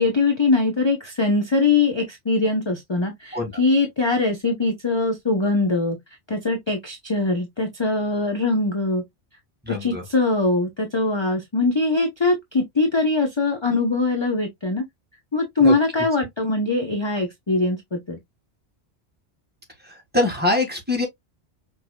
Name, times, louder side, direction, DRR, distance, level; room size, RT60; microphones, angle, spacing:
voice 1, 0.0-6.0 6.3-9.0 9.7-14.9 15.3-18.2, left 3 dB, 25° left, 0.9 m, -22 dB
voice 2, 9.7-10.0 15.6-15.7 20.1-21.1, left 2 dB, 10° right, 1.8 m, -23 dB
5.9 x 3.2 x 2.2 m
omnidirectional pair, 1.1 m